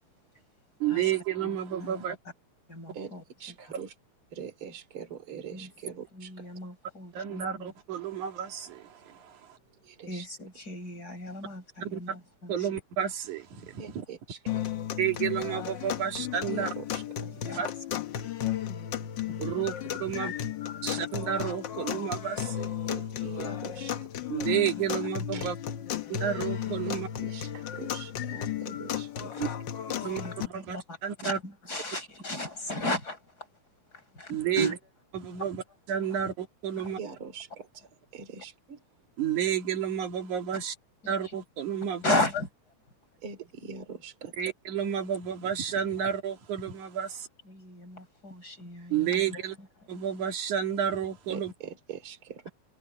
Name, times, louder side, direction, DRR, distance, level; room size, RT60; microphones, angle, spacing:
voice 1, 0.8-2.2 7.1-9.6 11.8-12.2 12.5-14.1 15.0-16.7 17.6-17.7 19.4-20.3 20.8-22.8 24.3-25.6 26.1-27.1 29.4-29.5 30.0-31.4 34.3-34.7 35.1-35.6 35.9-37.0 39.2-40.8 41.1-42.2 44.4-47.3 48.9-49.6 49.9-51.5, right 9 dB, 80° right, 3.6 m, -31 dB
voice 2, 1.8-2.2 2.7-3.2 5.5-7.7 10.1-12.7 17.2-17.7 19.5-19.7 20.1-20.3 20.6-21.1 23.9-24.0 26.0-26.2 29.3-29.5 30.0-33.5 33.9-34.8 36.8-36.9 41.0-41.1 42.0-42.5 47.5-49.4, left 1 dB, 30° left, 7.4 m, -35 dB
voice 3, 3.4-3.9 4.3-6.5 9.8-10.3 13.8-14.7 16.5-17.3 22.9-24.1 25.3-25.5 27.2-29.5 37.0-37.9 38.1-38.8 43.2-44.3 51.3-52.4, right 6 dB, 45° right, 3.5 m, -43 dB
sound 1, 14.5-30.5, left 10 dB, 85° left, 1.0 m, -34 dB
omnidirectional pair, 3.4 m